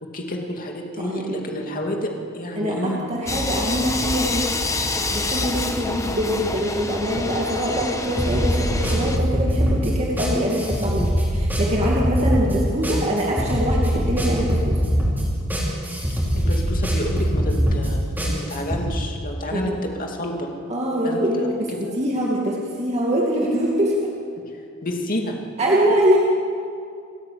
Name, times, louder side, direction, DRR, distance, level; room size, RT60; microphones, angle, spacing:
voice 1, 0.1-3.0 16.4-18.0 18.3-20.5 21.0-21.2 21.7-22.0 24.8-25.4, left 1 dB, 45° left, 1 dB, 2.5 m, -29 dB
voice 2, 1.0-1.4 2.6-4.4 5.1-14.8 19.5-19.7 20.7-24.1 25.6-26.2, equal, 30° right, -3 dB, 2.2 m, -23 dB
sound 1, 3.3-9.2, left 2 dB, 15° left, 1.2 m, -27 dB
sound 2, 8.2-18.8, equal, 10° right, 5.2 m, -22 dB
28.5 x 10.5 x 8.6 m, 2.4 s
head